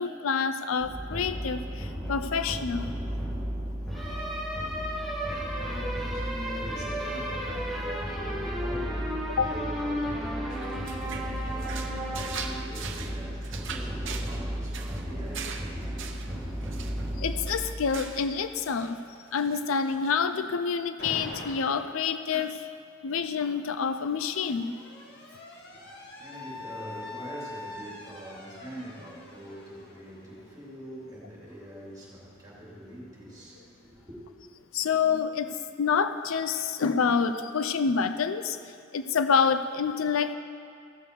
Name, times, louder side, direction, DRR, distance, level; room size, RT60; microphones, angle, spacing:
voice 1, 0.0-2.9 9.4-9.5 17.2-19.0 19.3-22.7 23.0-24.7 34.7-40.4, left 6 dB, 75° left, 10 dB, 0.5 m, -27 dB
sound 1, 0.8-18.4, equal, ahead, 1.8 m, -33 dB
voice 2, 4.8-15.9 25.5-34.2, right 1 dB, 20° right, -6 dB, 3.0 m, -44 dB
sound 2, 10.5-18.4 18.6-19.0 19.3-20.1, right 6 dB, 65° right, 0.8 m, -41 dB
Alarm, 21.0-22.0 23.2-30.9, left 2 dB, 55° left, 1.8 m, -44 dB
15.5 x 6.9 x 4.8 m, 2.3 s
head